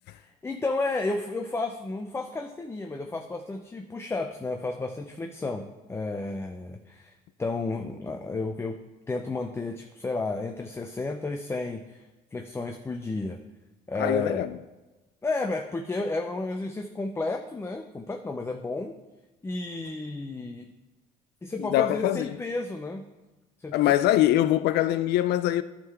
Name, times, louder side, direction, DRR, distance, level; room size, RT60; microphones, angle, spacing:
voice 1, 0.1-7.1 7.4-8.8 9.1-12.0 12.3-13.4 13.9-14.5 15.2-19.0 19.4-20.7 21.4-23.0 23.6-24.0, left 3 dB, 15° left, 0.5 m, -32 dB
voice 2, 14.0-14.5 21.6-22.4 23.7-25.6, left 13 dB, 75° left, 0.4 m, -23 dB
11.0 x 3.7 x 5.7 m
cardioid pair, 110°, 17 cm